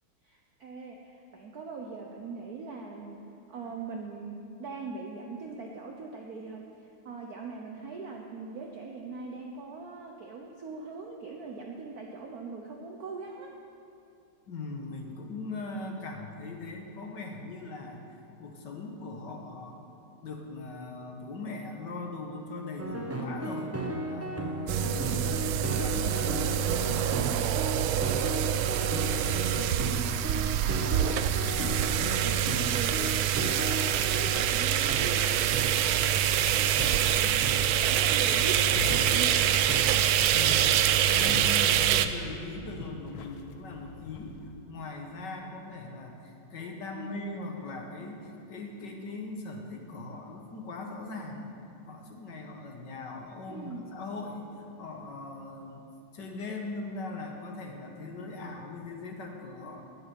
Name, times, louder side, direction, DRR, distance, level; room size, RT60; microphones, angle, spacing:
voice 1, 0.2-3.2 3.5-13.5 26.3-26.5 30.3-32.2 32.7-35.3 35.7-37.5 37.8-39.6 46.9-47.2 53.5-53.9, right 4 dB, 55° right, 1 dB, 1.2 m, -41 dB
voice 2, 14.5-19.8 20.2-26.7 40.2-40.8 41.1-51.6 51.9-55.9 56.1-59.8, left 3 dB, 55° left, 2 dB, 1.7 m, -40 dB
sound 1, 22.8-34.3 34.9-35.0 35.5-35.7 36.2-36.3 36.8-36.9 37.4-37.6 38.1-38.2 38.9-39.0 39.7-39.8 40.5-40.6 41.3-41.4, right 1 dB, 15° right, 0.6 m, -35 dB
sound 2, 24.7-42.1, right 10 dB, 80° right, 1.4 m, -26 dB
sound 3, 38.7-44.6, left 7 dB, 75° left, 1.6 m, -44 dB
9.8 x 9.7 x 9.2 m, 2.8 s
omnidirectional pair, 2.4 m